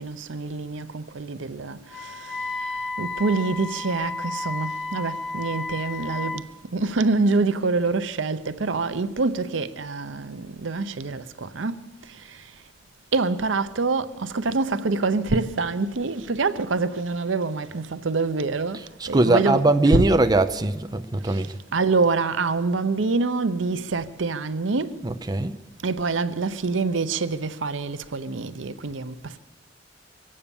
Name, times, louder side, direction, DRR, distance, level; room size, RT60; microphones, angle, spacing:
voice 1, 0.0-2.5 3.0-6.4 6.7-11.8 13.1-18.8 19.1-19.6 19.9-20.0 21.3-21.4 21.7-25.0 25.8-29.4, right 3 dB, 90° right, 0.7 m, -26 dB
Wind instrument woodwind instrument, 1.9-6.5, left 3 dB, ahead, 1.0 m, -32 dB
voice 2, 18.7-21.5 25.0-25.6, right 2 dB, 20° right, 0.5 m, -21 dB
24.0 x 8.6 x 7.0 m
head